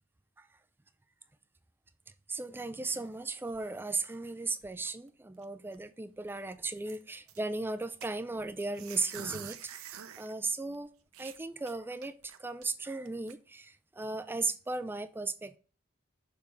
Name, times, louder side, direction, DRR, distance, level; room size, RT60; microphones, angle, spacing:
voice 1, 2.3-10.9 11.2-15.6, right 3 dB, 10° right, 0.3 m, -36 dB
sound 1, 2.9-4.3 4.6-5.1 5.4-5.5 5.7-5.9 6.3-7.4 8.0-10.3 10.7-10.8 11.1-12.6 13.1-13.3, right 9 dB, 85° right, 0.6 m, -47 dB
6.7 x 3.4 x 5.2 m
head